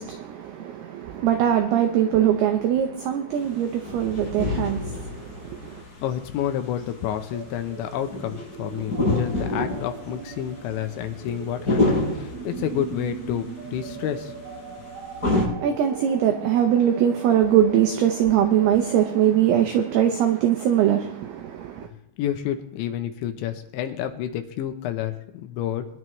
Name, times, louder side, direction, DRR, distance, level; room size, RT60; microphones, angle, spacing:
voice 1, 0.0-5.8 15.3-21.9, right 10 dB, 85° right, 2.3 m, -22 dB
sound 1, 3.3-15.5, left 2 dB, 15° left, 6.2 m, -29 dB
voice 2, 6.0-14.3 21.8-21.9 22.2-25.9, left 10 dB, 80° left, 2.9 m, -29 dB
sound 2, 7.3-19.2, right 7 dB, 70° right, 2.3 m, -40 dB
22.0 x 11.0 x 3.1 m
omnidirectional pair, 5.7 m